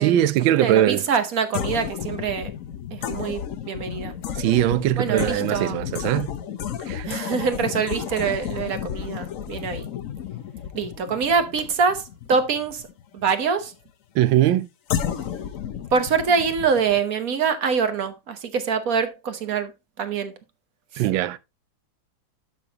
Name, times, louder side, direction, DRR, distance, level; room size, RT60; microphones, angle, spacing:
voice 1, 0.0-1.0 4.3-6.3 6.9-7.1 14.1-14.7 21.0-21.4, right 13 dB, 85° right, 1.4 m, -21 dB
voice 2, 0.6-2.5 2.9-4.1 5.0-5.8 7.1-9.9 10.7-12.9 13.1-13.7 15.9-19.7 20.0-20.3, right 6 dB, 55° right, 1.3 m, -24 dB
sound 1, 1.5-13.3 14.9-17.0, left 9 dB, 60° left, 0.9 m, -32 dB
12.0 x 5.7 x 2.8 m
omnidirectional pair, 2.1 m